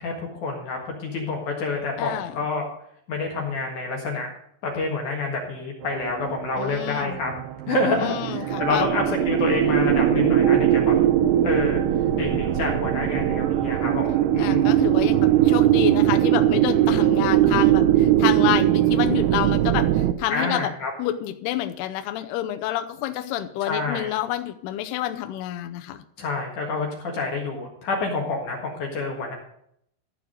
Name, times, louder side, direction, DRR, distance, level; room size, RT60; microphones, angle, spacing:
voice 1, 0.0-2.6 3.1-4.3 4.6-7.3 7.7-10.9 11.4-11.8 12.2-14.9 20.3-20.9 23.6-24.1 26.2-29.4, left 3 dB, 55° left, 0 dB, 2.7 m, -28 dB
voice 2, 2.0-2.4 6.6-7.2 7.9-8.9 14.4-20.7 21.0-26.0, left 13 dB, 80° left, 7 dB, 2.6 m, -28 dB
sound 1, 5.8-20.1, right 12 dB, 80° right, 2.6 m, -21 dB
14.0 x 4.7 x 7.6 m, 0.71 s
omnidirectional pair, 4.9 m